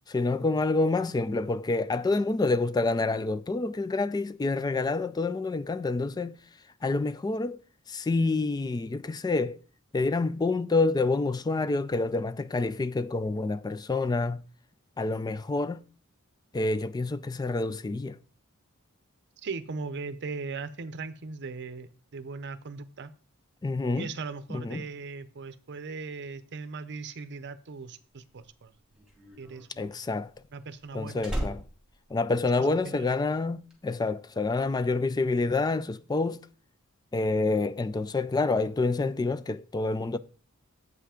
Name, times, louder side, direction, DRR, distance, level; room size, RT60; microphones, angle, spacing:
voice 1, 0.1-6.3 6.8-7.6 7.9-9.6 9.9-14.4 15.0-15.8 16.5-18.2 23.6-24.1 24.5-24.8 29.8-30.3 30.9-31.6 32.1-36.4 37.1-40.2, left 3 dB, 20° left, 0.3 m, -27 dB
voice 2, 19.4-23.1 23.9-28.7 29.4-30.0 30.5-31.2 32.6-33.1, right 4 dB, 55° right, 0.6 m, -39 dB
Slam, 28.2-33.0 33.3-33.7, equal, 5° right, 2.3 m, -38 dB
8.2 x 5.7 x 4.9 m
head